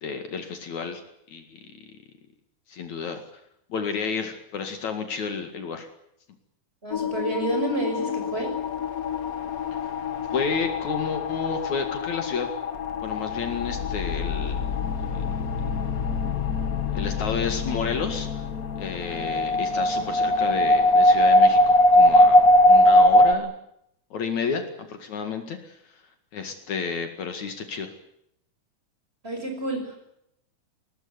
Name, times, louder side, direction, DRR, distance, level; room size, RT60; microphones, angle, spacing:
voice 1, 0.0-1.0 1.3-1.7 2.7-3.2 3.7-5.9 10.3-12.5 13.0-14.6 15.1-15.4 16.9-18.4 18.8-23.5 24.1-25.8 26.3-27.9, left 5 dB, 65° left, 6 dB, 3.3 m, -31 dB
voice 2, 6.8-8.5 29.2-30.0, right 1 dB, 15° right, 4 dB, 6.5 m, -29 dB
sound 1, 6.9-23.3, left 1 dB, 45° left, 1.1 m, -22 dB
21.5 x 19.5 x 9.7 m, 0.76 s
omnidirectional pair, 3.7 m